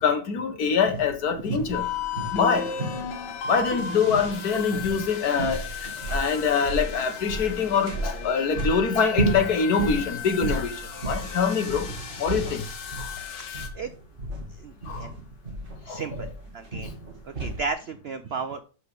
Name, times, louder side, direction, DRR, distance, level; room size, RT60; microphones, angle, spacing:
voice 1, 0.0-1.9 2.3-2.7 3.5-5.6 6.1-11.9 12.2-12.6 14.9-15.1 15.9-16.2, left 6 dB, 60° left, 1.6 m, -24 dB
sound 1, 0.9-17.7, right 3 dB, 30° right, 2.0 m, -33 dB
sound 2, 1.7-13.7, left 6 dB, 80° left, 2.0 m, -35 dB
voice 2, 15.9-16.9 17.2-18.6, right 4 dB, 75° right, 0.5 m, -34 dB
6.8 x 6.3 x 4.9 m
omnidirectional pair, 1.9 m